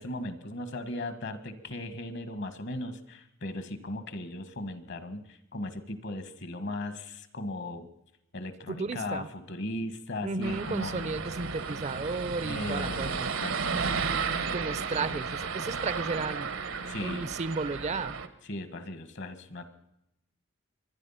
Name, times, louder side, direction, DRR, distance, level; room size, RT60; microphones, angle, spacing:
voice 1, 0.0-7.9 8.3-11.1 12.4-15.2 16.9-17.3 18.4-19.6, left 1 dB, 60° left, 11 dB, 1.5 m, -38 dB
voice 2, 8.7-9.3 10.2-13.3 14.5-16.5 17.0-18.1, right 3 dB, 35° right, 17 dB, 0.5 m, -33 dB
sound 1, 10.4-18.3, right 5 dB, 80° right, 1.1 m, -33 dB
24.5 x 10.5 x 5.6 m, 0.81 s
head